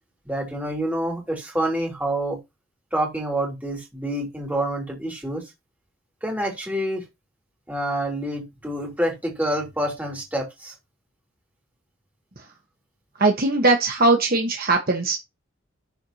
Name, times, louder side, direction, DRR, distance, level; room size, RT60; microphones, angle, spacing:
voice 1, 0.2-2.4 2.9-5.4 6.2-7.0 7.7-10.7, right 1 dB, 5° right, 3.2 m, -27 dB
voice 2, 13.2-15.2, right 2 dB, 45° right, 1.3 m, -20 dB
12.0 x 4.6 x 2.9 m
head